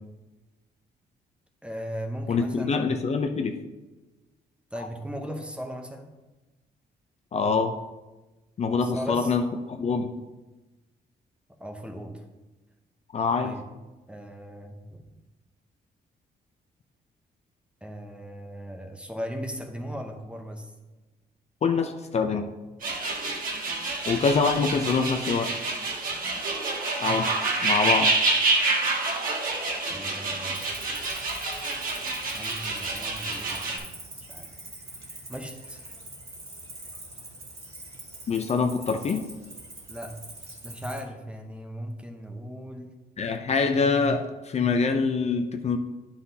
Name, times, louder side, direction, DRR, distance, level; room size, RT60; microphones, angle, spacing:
voice 1, 1.6-2.8 4.7-6.1 8.8-9.3 11.6-12.2 13.4-13.7 14.1-15.0 17.8-20.7 29.9-30.6 32.3-33.9 34.3-34.5 35.3-35.8 39.9-40.2 40.6-43.0, equal, 5° right, 4 dB, 0.8 m, -37 dB
voice 2, 2.3-3.6 7.3-7.7 8.6-10.1 13.1-13.5 21.6-22.5 24.1-25.5 27.0-28.1 31.4-31.7 38.3-39.3 43.2-45.8, left 4 dB, 40° left, 5 dB, 0.5 m, -25 dB
sound 1, 22.8-33.8, right 3 dB, 55° right, 1.5 m, -28 dB
Cricket, 30.5-41.0, right 2 dB, 35° right, 1.8 m, -44 dB
10.0 x 5.7 x 2.8 m, 1.1 s
cardioid pair, 120°, 17 cm